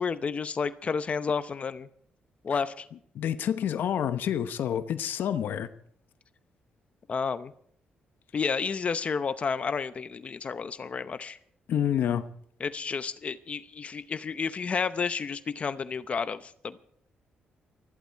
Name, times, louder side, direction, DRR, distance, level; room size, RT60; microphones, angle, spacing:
voice 1, 0.0-1.9 2.4-2.9 7.1-7.5 8.3-11.4 12.6-16.8, left 5 dB, 40° left, 0.7 m, -31 dB
voice 2, 3.1-5.7 11.7-12.3, left 9 dB, 75° left, 0.9 m, -28 dB
20.0 x 14.5 x 4.6 m
cardioid pair, 125°, 3 cm